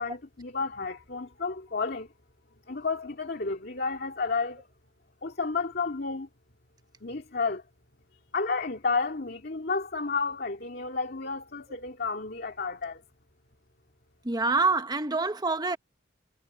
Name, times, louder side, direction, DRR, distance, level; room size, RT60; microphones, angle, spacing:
voice 1, 0.0-2.1 2.7-4.7 5.2-6.3 7.0-7.6 8.3-13.0, left 4 dB, 50° left, 2.3 m, -31 dB
voice 2, 14.2-15.8, right 3 dB, 20° right, 1.0 m, -26 dB
head